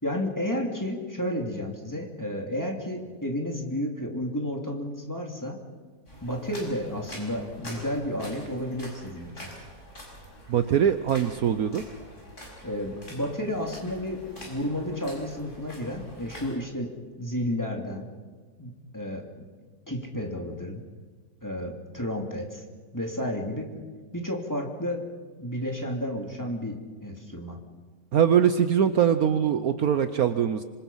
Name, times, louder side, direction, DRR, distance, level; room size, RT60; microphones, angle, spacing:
voice 1, 0.0-5.6 6.2-9.5 12.6-18.1 18.6-19.3 19.9-20.8 21.4-22.6 22.9-23.8 24.1-25.0 25.4-27.6, left 1 dB, 10° left, 1 dB, 2.7 m, -32 dB
sound 1, 6.1-16.5, equal, 45° left, 6.6 m, -45 dB
voice 2, 10.5-11.8 28.1-30.6, right 8 dB, 65° right, 10 dB, 1.2 m, -22 dB
26.0 x 26.0 x 5.6 m, 1.5 s
omnidirectional pair, 1.8 m